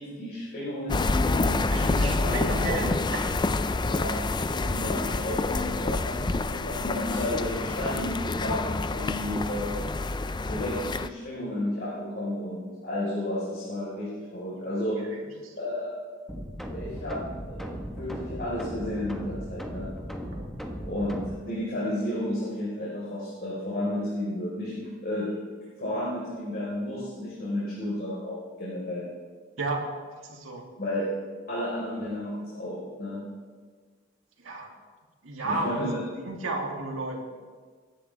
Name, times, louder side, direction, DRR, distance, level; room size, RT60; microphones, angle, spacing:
voice 1, 0.0-2.8 3.8-8.6 8.9-9.8 10.5-15.0 15.6-15.9 16.7-19.9 20.8-25.3 25.8-29.1 30.8-31.1 31.5-33.2 35.4-36.0, left 1 dB, 50° left, -7 dB, 4.4 m, -32 dB
sound 1, 0.9-11.1, left 3 dB, 20° left, 0.4 m, -28 dB
voice 2, 1.7-3.2 15.4-15.5 20.3-20.5 29.6-29.8 30.2-30.6 34.4-34.7 35.2-35.9 36.3-37.2, right 2 dB, 85° right, 0 dB, 2.6 m, -32 dB
sound 2, 16.3-21.4, equal, ahead, 1.2 m, -37 dB
23.5 x 11.0 x 3.5 m, 1.5 s
head